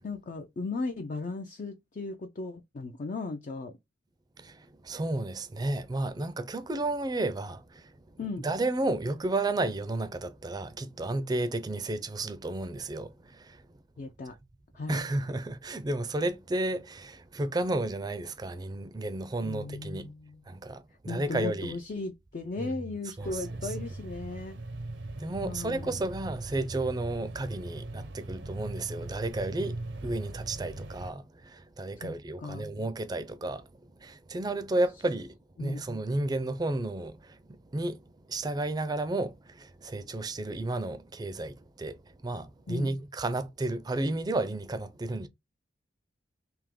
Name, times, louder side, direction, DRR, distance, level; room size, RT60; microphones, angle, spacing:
voice 1, 0.0-3.8 8.2-8.5 14.0-14.4 14.7-15.0 19.4-20.4 21.1-24.6 25.4-25.9 32.0-32.7 35.6-35.8 42.7-42.9, left 3 dB, 45° left, 0.4 m, -37 dB
voice 2, 4.4-8.0 8.4-13.6 14.9-20.1 20.5-21.8 22.6-22.7 23.2-23.7 25.2-45.3, right 2 dB, 20° right, 0.4 m, -32 dB
sound 1, 23.2-31.1, right 2 dB, 80° right, 0.7 m, -40 dB
3.5 x 2.9 x 3.5 m
head